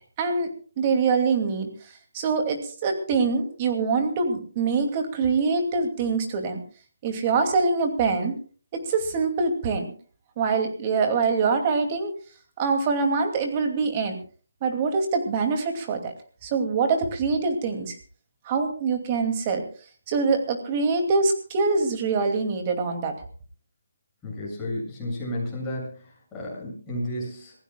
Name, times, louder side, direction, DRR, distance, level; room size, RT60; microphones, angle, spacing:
voice 1, 0.2-0.5 0.8-1.7 2.1-6.6 7.0-8.4 8.7-9.9 10.4-12.1 12.6-14.2 14.6-16.1 16.4-18.0 18.5-19.6 20.1-23.1, right 4 dB, 25° right, 5 dB, 2.5 m, -24 dB
voice 2, 24.2-27.5, left 1 dB, 10° left, -5 dB, 7.8 m, -32 dB
26.5 x 16.0 x 2.3 m, 0.40 s
hypercardioid pair, 165°, 0 cm